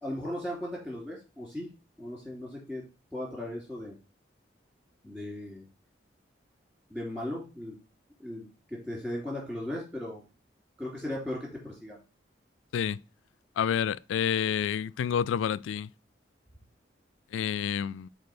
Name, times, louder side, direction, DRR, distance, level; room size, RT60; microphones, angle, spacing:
voice 1, 0.0-1.7 2.0-2.8 3.1-4.0 5.0-5.6 6.9-7.7 8.2-10.2 10.8-12.0, left 1 dB, 10° right, 2.8 m, -37 dB
voice 2, 13.6-15.9 17.3-18.1, left 8 dB, 90° left, 0.3 m, -29 dB
5.2 x 4.4 x 5.9 m
head